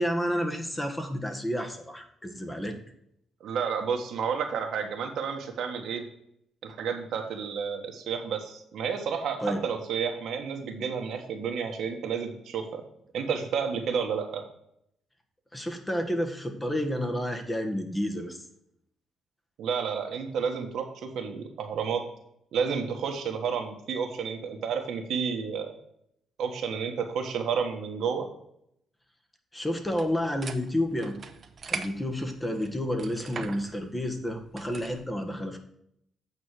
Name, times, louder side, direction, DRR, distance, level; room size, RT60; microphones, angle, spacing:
voice 1, 0.0-2.8 9.4-9.6 15.5-18.4 29.5-31.2 31.7-35.6, equal, 15° left, 4 dB, 1.4 m, -30 dB
voice 2, 3.4-6.0 6.6-12.8 13.1-14.4 19.6-22.0 22.5-25.7 26.4-28.3, right 6 dB, 75° right, 4 dB, 1.4 m, -31 dB
sound 1, 29.8-35.1, right 5 dB, 45° right, 0.8 m, -41 dB
8.4 x 4.4 x 6.3 m, 0.74 s
cardioid pair, 90°, 0 cm